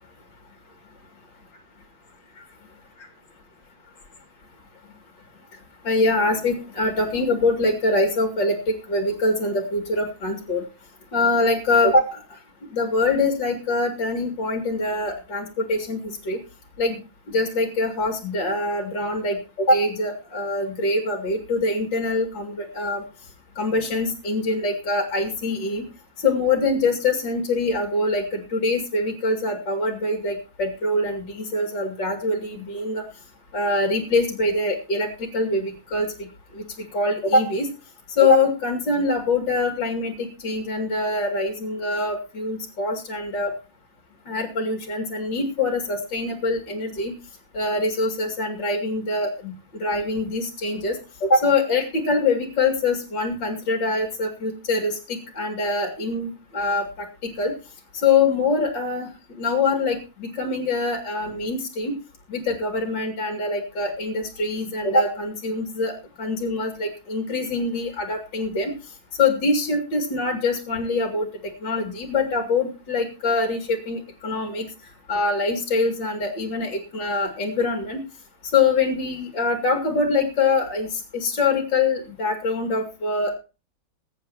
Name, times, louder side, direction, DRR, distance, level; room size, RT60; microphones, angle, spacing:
voice 1, 5.8-10.6 11.1-12.2 12.7-16.4 16.8-17.0 17.3-23.0 23.6-25.8 26.2-33.0 33.5-35.1 35.3-36.3 36.5-36.6 36.9-37.7 38.1-43.5 44.3-47.1 47.5-49.5 49.8-57.5 57.9-59.1 59.4-61.9 62.3-68.7 69.2-71.3 71.6-74.7 75.1-78.0 78.5-83.4, left 3 dB, 60° left, 3 dB, 3.1 m, -24 dB
22.0 x 9.8 x 2.9 m, 0.33 s
omnidirectional pair, 2.2 m